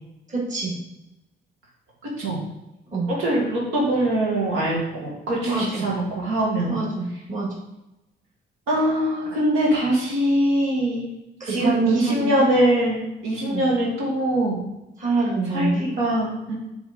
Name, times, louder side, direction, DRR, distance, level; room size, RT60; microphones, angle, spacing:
voice 1, 0.3-0.8 2.9-3.1 5.4-5.9 6.7-7.6 11.4-12.5 13.4-13.7 15.0-15.9, right 3 dB, 40° right, -3 dB, 2.1 m, -25 dB
voice 2, 3.1-6.7 8.7-11.1 11.5-14.6 15.5-16.5, right 1 dB, 90° right, -4 dB, 1.7 m, -23 dB
7.2 x 3.6 x 3.8 m, 0.93 s
cardioid pair, 90°, 20 cm